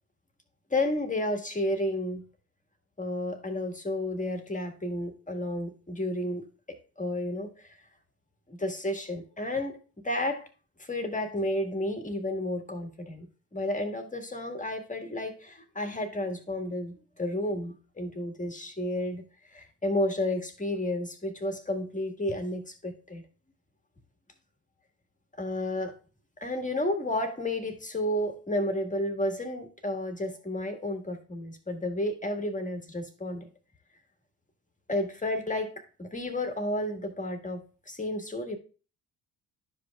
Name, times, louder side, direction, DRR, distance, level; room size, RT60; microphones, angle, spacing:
voice 1, 0.7-2.2 3.0-6.4 7.0-7.8 8.5-9.8 10.0-10.5 10.8-19.2 19.5-23.2 25.4-26.0 26.4-33.5 34.9-35.7 36.0-38.6, left 1 dB, 15° left, 5 dB, 1.6 m, -31 dB
11.5 x 5.2 x 2.3 m, 0.36 s
hypercardioid pair, 50°, 47 cm